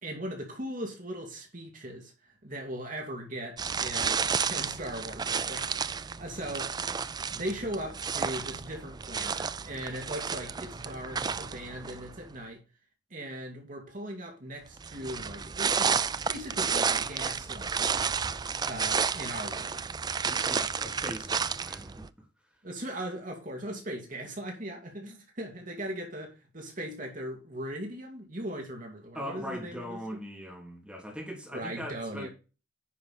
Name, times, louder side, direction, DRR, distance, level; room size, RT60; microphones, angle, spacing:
voice 1, 0.0-6.8 7.3-12.6 13.1-16.0 16.3-17.9 18.6-19.8 22.6-30.0 31.5-32.3, right 1 dB, 45° right, 2.5 m, -39 dB
sound 1, 3.6-12.2 14.8-22.1, right 6 dB, 20° right, 0.4 m, -31 dB
voice 2, 20.2-22.3 29.1-32.3, equal, 5° right, 3.0 m, -40 dB
10.0 x 5.8 x 4.3 m
head